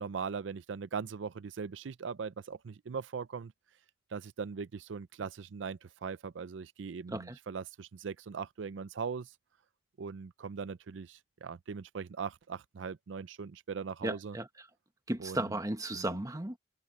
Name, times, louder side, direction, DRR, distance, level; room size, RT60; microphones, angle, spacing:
voice 1, 0.0-3.5 4.1-9.3 10.0-14.3 15.2-15.5 15.9-16.2, right 5 dB, 85° right, 0.5 m, -40 dB
voice 2, 7.1-7.4 14.0-14.7 15.1-16.6, right 1 dB, 20° right, 1.3 m, -35 dB
head